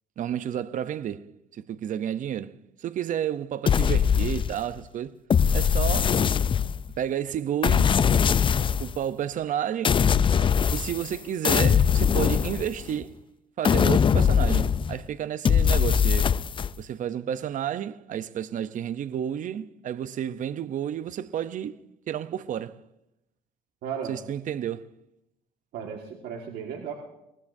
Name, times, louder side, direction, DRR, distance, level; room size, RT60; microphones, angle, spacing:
voice 1, 0.2-5.2 5.5-6.2 7.0-8.0 8.8-10.0 10.7-13.2 13.6-16.4 16.8-21.8 22.1-22.8 24.0-24.9, right 10 dB, 50° right, 0.7 m, -31 dB
sound 1, 3.7-4.8 5.3-6.9 7.6-9.0 9.8-11.2 11.4-13.0 13.6-15.0 15.4-16.7, left 7 dB, 30° left, 0.4 m, -21 dB
voice 2, 23.8-24.1 25.7-26.9, right 7 dB, 75° right, 1.8 m, -35 dB
22.0 x 20.0 x 2.7 m
cardioid pair, 110°, 17 cm